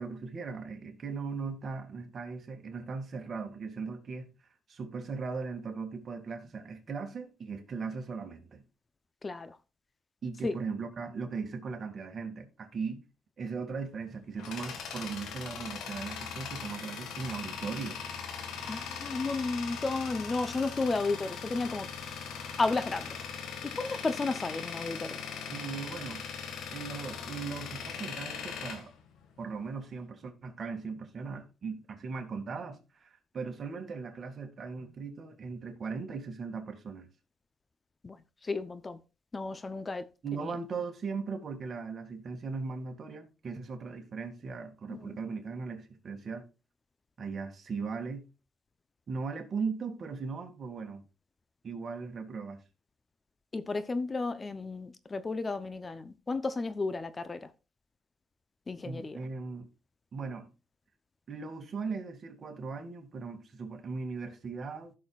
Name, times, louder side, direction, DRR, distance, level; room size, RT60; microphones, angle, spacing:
voice 1, 0.0-4.3 4.7-8.6 10.2-13.0 13.4-18.0 25.5-26.2 26.7-28.9 29.4-37.1 40.2-46.5 47.2-48.2 49.1-51.0 51.6-52.6 58.8-59.7 60.1-60.5 61.3-64.9, right 4 dB, 45° right, 2.1 m, -38 dB
voice 2, 9.2-9.6 10.4-10.6 18.6-21.9 22.6-23.2 23.7-25.2 38.0-38.2 38.4-39.0 39.3-40.0 44.9-45.2 53.5-57.5 58.7-59.2, left 3 dB, 30° left, 0.7 m, -33 dB
Tools, 13.9-29.7, left 6 dB, 85° left, 1.7 m, -40 dB
15.5 x 6.4 x 2.4 m
cardioid pair, 90°, 0 cm